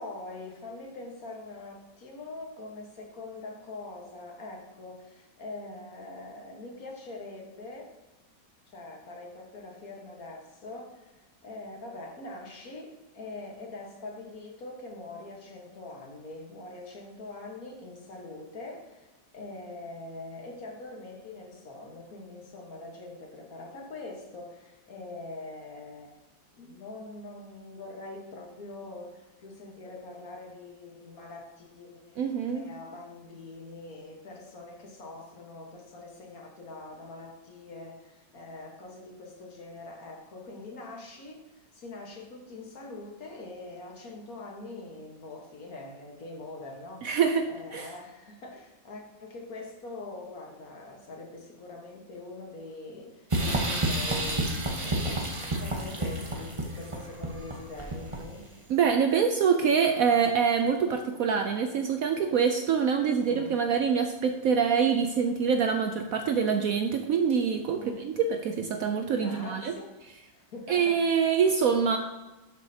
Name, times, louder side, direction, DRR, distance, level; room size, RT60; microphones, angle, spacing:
voice 1, 0.0-7.9 8.7-26.1 26.6-32.2 32.5-47.2 47.5-58.5 63.2-63.6 67.7-68.0 69.1-69.9 70.3-71.4, left 2 dB, 55° left, 1 dB, 1.8 m, -43 dB
voice 2, 32.2-32.7 47.0-47.9 58.7-69.7 70.7-72.0, right 6 dB, 70° right, 6 dB, 0.9 m, -25 dB
sound 1, 53.3-58.5, right 1 dB, 25° right, 0.8 m, -30 dB
12.0 x 6.5 x 2.8 m, 1.1 s
omnidirectional pair, 1.9 m